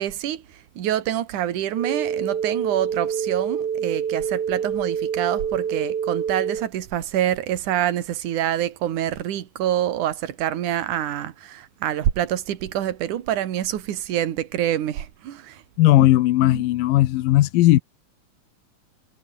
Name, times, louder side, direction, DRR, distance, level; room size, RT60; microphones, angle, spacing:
voice 1, 0.0-15.6 16.0-16.1 16.4-16.6, right 11 dB, 70° right, 3.1 m, -26 dB
sound 1, 1.7-6.7, right 7 dB, 55° right, 1.2 m, -26 dB
voice 2, 15.8-17.8, left 15 dB, 85° left, 2.7 m, -17 dB
omnidirectional pair, 3.9 m